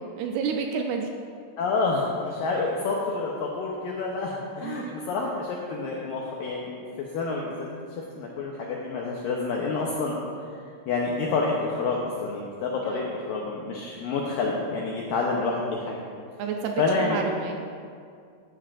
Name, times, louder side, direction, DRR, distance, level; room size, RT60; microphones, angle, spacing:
voice 1, 0.2-1.1 4.6-5.0 12.9-13.1 16.4-17.7, right 6 dB, 80° right, 3 dB, 2.4 m, -30 dB
voice 2, 1.6-7.7 8.2-10.1 10.9-16.0 16.8-17.2, left 3 dB, 90° left, -2 dB, 2.0 m, -28 dB
14.5 x 9.5 x 2.5 m, 2.3 s
omnidirectional pair, 5.0 m